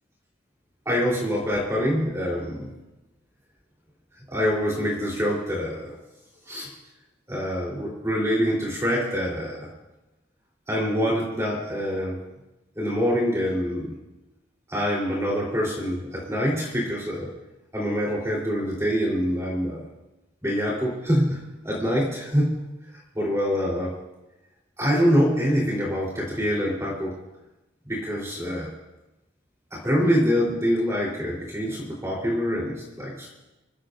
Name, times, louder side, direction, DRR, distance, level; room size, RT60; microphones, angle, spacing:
voice 1, 0.9-2.7 4.3-5.9 6.5-6.7 7.3-9.7 10.7-12.2 12.8-13.9 14.7-17.3 17.7-19.8 20.4-22.6 23.2-23.9 24.8-27.1 27.9-28.7 29.7-33.3, equal, 15° right, -4 dB, 3.6 m, -25 dB
26.5 x 15.5 x 2.6 m, 1.0 s
head